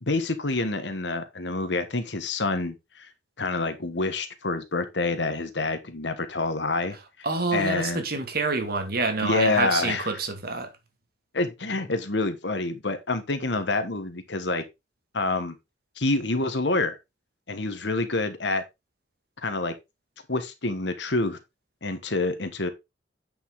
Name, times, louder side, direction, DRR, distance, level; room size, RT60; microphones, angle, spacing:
voice 1, 0.0-3.1 3.4-7.0 7.5-8.0 9.2-10.1 11.3-14.6 15.1-15.6 16.0-17.0 17.5-18.6 19.4-19.8 20.3-21.4 21.8-22.7, left 2 dB, 70° left, 1.5 m, -27 dB
voice 2, 7.2-10.7, right 3 dB, 55° right, 2.0 m, -27 dB
9.1 x 5.4 x 3.7 m
head